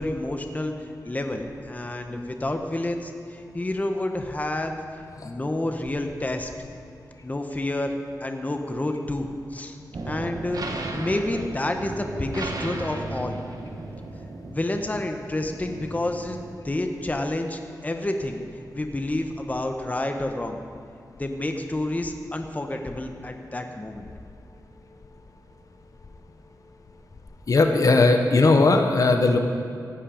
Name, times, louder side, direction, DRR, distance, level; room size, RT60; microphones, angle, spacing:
voice 1, 0.0-4.8 5.2-6.5 7.2-9.8 10.0-13.4 14.5-18.4 18.7-20.6 21.2-24.1, left 1 dB, 20° left, 5 dB, 0.9 m, -29 dB
sound 1, 9.9-16.6, right 2 dB, 60° right, 1.1 m, -35 dB
voice 2, 27.5-29.4, left 3 dB, 55° left, 5 dB, 0.9 m, -18 dB
15.5 x 8.7 x 5.0 m, 2.4 s
wide cardioid pair, 85°, 7 cm